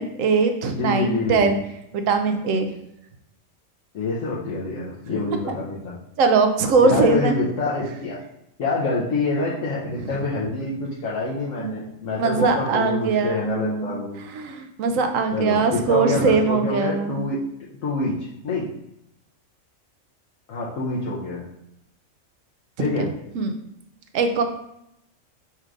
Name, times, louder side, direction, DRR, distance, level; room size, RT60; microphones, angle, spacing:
voice 1, 0.0-1.6 1.9-2.7 6.2-7.3 10.0-10.1 11.6-11.8 12.2-14.0 14.3-17.3 22.8-22.9 23.3-23.5 24.1-24.4, right 4 dB, 80° right, 6 dB, 1.0 m, -21 dB
voice 2, 0.7-1.5 3.9-6.0 6.8-8.2 8.6-14.2 15.3-17.4 17.8-18.2 18.4-18.7 20.5-21.5 22.8-23.1, left 3 dB, 75° left, -6 dB, 1.2 m, -26 dB
4.3 x 2.5 x 4.7 m, 0.80 s
omnidirectional pair, 1.4 m